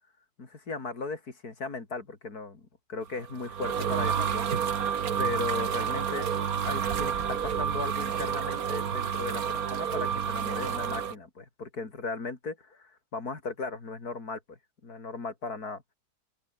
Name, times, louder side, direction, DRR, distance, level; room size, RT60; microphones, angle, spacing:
voice 1, 0.4-6.3 6.7-14.6 14.8-15.8, left 3 dB, 75° left, 4.0 m, -37 dB
sound 1, 3.2-11.1, right 7 dB, 70° right, 1.8 m, -29 dB
open air
omnidirectional pair, 1.6 m